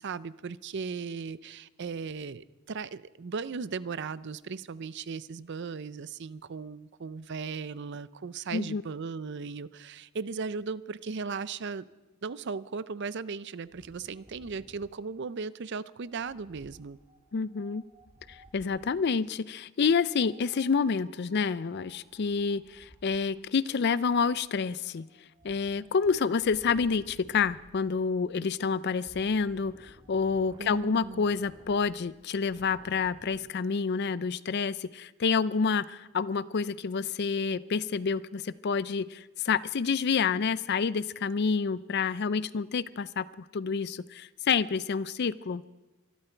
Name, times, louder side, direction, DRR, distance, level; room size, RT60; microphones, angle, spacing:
voice 1, 0.0-11.8 12.2-17.0 30.6-31.2, right 5 dB, 55° right, 16 dB, 0.5 m, -37 dB
voice 2, 8.5-8.8 17.3-17.8 18.3-25.1 25.4-45.6, left 5 dB, 50° left, 17 dB, 0.4 m, -28 dB
Wind, 13.7-19.1 20.1-33.4, equal, 25° right, 2.0 m, -57 dB
24.5 x 12.5 x 4.5 m, 1.1 s
head